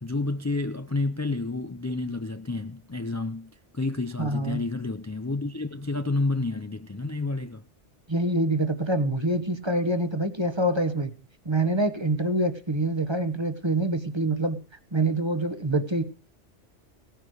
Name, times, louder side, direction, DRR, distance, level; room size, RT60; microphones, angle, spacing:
voice 1, 0.0-7.6, left 2 dB, 20° left, 0.6 m, -30 dB
voice 2, 4.2-4.6 8.1-11.1 11.4-14.6 14.9-16.0, right 1 dB, 25° right, 1.2 m, -25 dB
17.0 x 9.5 x 6.4 m
omnidirectional pair, 1.2 m